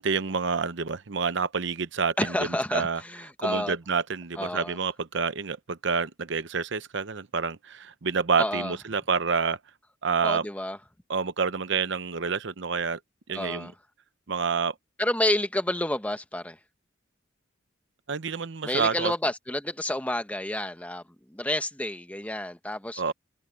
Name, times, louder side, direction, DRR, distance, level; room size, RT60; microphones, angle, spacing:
voice 1, 0.0-2.2 2.7-3.0 3.4-9.6 10.0-10.4 11.1-13.0 13.3-13.7 14.3-14.7 18.1-19.1 23.0-23.1, right 5 dB, 70° right, 0.8 m, -28 dB
voice 2, 2.2-3.7 4.4-4.8 8.4-8.7 10.2-10.8 13.3-13.7 15.0-16.6 18.6-21.0 21.3-23.0, left 1 dB, 10° left, 1.3 m, -29 dB
head